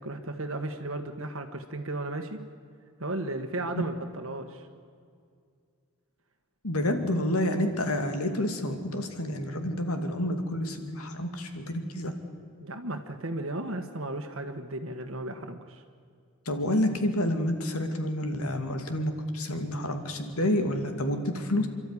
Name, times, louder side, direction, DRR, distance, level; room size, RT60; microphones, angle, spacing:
voice 1, 0.0-2.4 3.0-4.7 12.6-15.8, right 2 dB, 65° right, 5 dB, 1.4 m, -35 dB
voice 2, 6.6-12.1 16.5-21.7, left 1 dB, 85° left, 7 dB, 2.5 m, -29 dB
29.0 x 12.5 x 9.9 m, 2.3 s
head